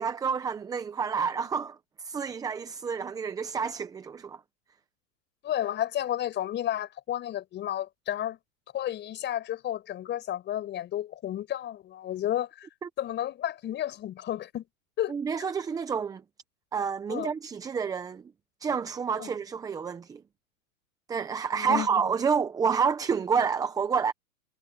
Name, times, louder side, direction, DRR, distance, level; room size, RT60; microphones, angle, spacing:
voice 1, 0.0-4.4 12.8-12.9 15.1-16.2 16.7-18.3 18.6-20.2 21.1-24.1, right 6 dB, 10° right, 0.7 m, -29 dB
voice 2, 5.4-8.4 8.7-12.7 13.0-14.7 15.0-15.2 17.1-17.3 19.2-19.3 21.5-22.0, left 11 dB, 25° left, 5.5 m, -32 dB
hypercardioid pair, 135°, 42 cm